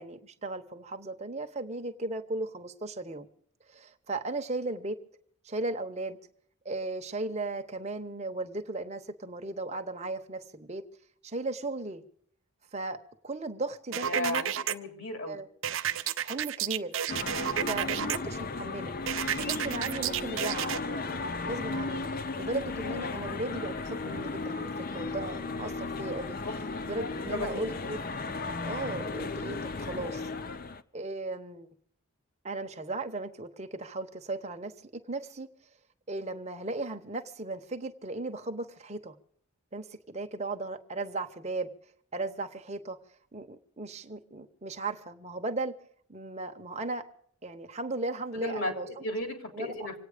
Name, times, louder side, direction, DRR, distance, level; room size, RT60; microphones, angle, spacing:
voice 1, 0.0-3.3 3.7-5.0 5.4-6.2 6.6-10.9 11.2-12.0 12.7-14.4 15.3-15.5 16.2-16.9 17.7-19.0 19.4-21.2 21.5-26.4 26.8-28.0 28.6-30.2 30.9-31.7 32.4-35.5 36.1-39.2 39.7-41.7 42.1-43.0 43.3-45.7 46.1-47.1 47.4-49.0 49.5-49.9, right 2 dB, 30° right, 6 dB, 1.0 m, -36 dB
sound 1, 13.9-14.7 15.6-18.2 19.1-20.8, right 9 dB, 60° right, 0.6 m, -31 dB
voice 2, 14.0-15.4 26.4-26.5 27.3-27.6 48.4-49.9, left 1 dB, 65° left, 4 dB, 3.4 m, -34 dB
sound 2, 17.1-30.8, left 3 dB, 40° left, 0.6 m, -35 dB
26.0 x 9.2 x 5.0 m, 0.64 s
head